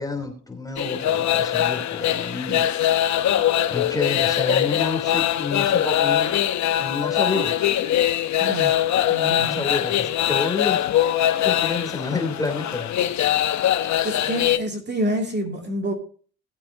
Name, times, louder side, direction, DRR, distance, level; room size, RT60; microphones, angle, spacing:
voice 1, 0.0-2.7 3.7-6.3 6.8-7.6 9.4-10.9 11.4-13.0 13.8-13.9, left 3 dB, 10° left, 3.3 m, -29 dB
sound 1, 0.8-14.6, left 11 dB, 70° left, 0.9 m, -22 dB
voice 2, 8.4-8.8 9.1-9.7 13.8-15.9, right 1 dB, 35° right, 2.6 m, -28 dB
18.5 x 8.4 x 2.8 m
cardioid pair, 90°, 30 cm